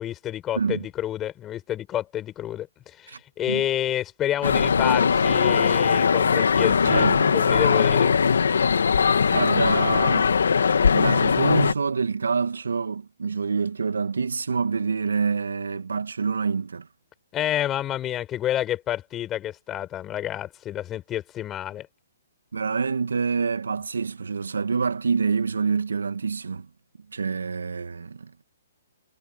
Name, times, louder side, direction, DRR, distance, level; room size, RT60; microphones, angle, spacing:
voice 1, 0.0-8.1 17.3-21.9, left 12 dB, 20° left, 4.6 m, -29 dB
voice 2, 0.6-0.9 3.1-3.2 3.5-3.6 6.8-7.4 9.3-10.3 10.9-16.9 22.5-26.7 27.1-28.3, right 5 dB, 85° right, 1.9 m, -26 dB
sound 1, 4.4-11.7, left 6 dB, 80° left, 2.0 m, -20 dB
hypercardioid pair, 145°, 0 cm